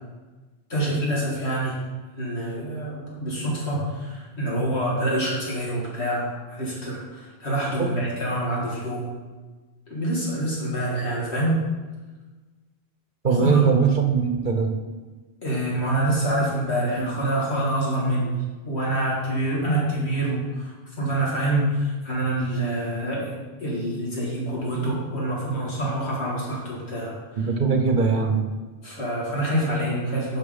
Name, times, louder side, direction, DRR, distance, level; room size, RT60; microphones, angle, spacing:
voice 1, 0.7-1.8 2.2-9.1 9.9-11.6 13.2-13.6 15.4-18.3 18.7-20.7 21.0-23.3 23.6-27.1 28.8-30.4, right 1 dB, 80° left, -5 dB, 2.6 m, -26 dB
voice 2, 13.2-14.8 27.4-28.4, right 5 dB, 55° right, 5 dB, 0.9 m, -21 dB
6.6 x 5.7 x 5.5 m, 1.3 s
omnidirectional pair, 1.1 m